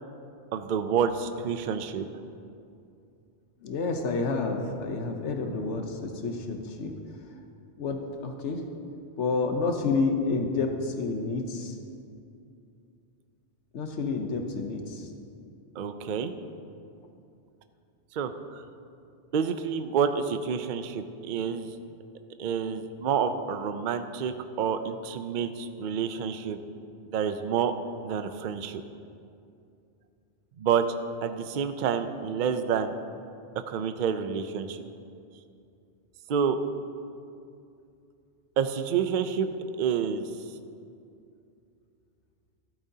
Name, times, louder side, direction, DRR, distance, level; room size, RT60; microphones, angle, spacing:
voice 1, 0.5-2.1 15.8-16.3 18.1-18.3 19.3-21.8 22.4-26.6 27.1-27.7 28.0-28.8 30.6-31.0 31.2-32.9 33.7-34.8 36.3-36.6 38.6-40.3, right 7 dB, 55° right, 9 dB, 0.6 m, -28 dB
voice 2, 3.6-6.9 7.8-8.6 9.2-11.8 13.7-15.1, left 4 dB, 80° left, 4 dB, 1.1 m, -29 dB
13.5 x 12.5 x 2.8 m, 2.5 s
omnidirectional pair, 1.2 m